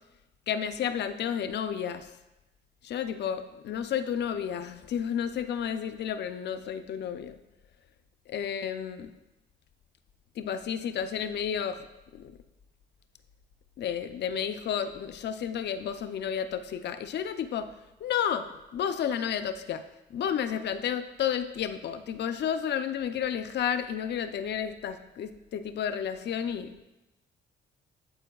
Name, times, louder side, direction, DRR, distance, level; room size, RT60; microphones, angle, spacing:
voice 1, 0.5-2.1 2.8-7.3 8.3-9.1 10.4-11.8 12.2-12.3 13.8-17.7 18.0-18.5 18.7-19.8 20.1-26.8, left 8 dB, 60° left, 10 dB, 0.5 m, -31 dB
11.0 x 4.5 x 2.3 m, 1.0 s
cardioid pair, 90°, 20 cm